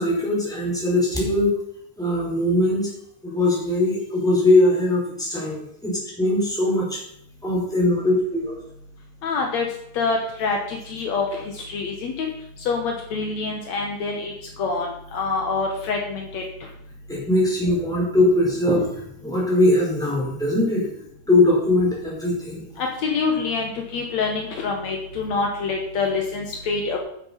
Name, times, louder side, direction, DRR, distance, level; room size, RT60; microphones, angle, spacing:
voice 1, 0.0-1.6 2.0-2.9 3.2-7.0 7.4-8.6 17.1-20.9 21.3-22.6, left 1 dB, ahead, -5 dB, 4.4 m, -21 dB
voice 2, 9.2-9.7 9.9-11.3 11.7-12.3 12.6-14.3 14.6-14.9 15.1-16.4 22.8-27.0, left 4 dB, 85° left, 2 dB, 1.5 m, -26 dB
9.8 x 9.5 x 5.7 m, 0.72 s
omnidirectional pair, 5.2 m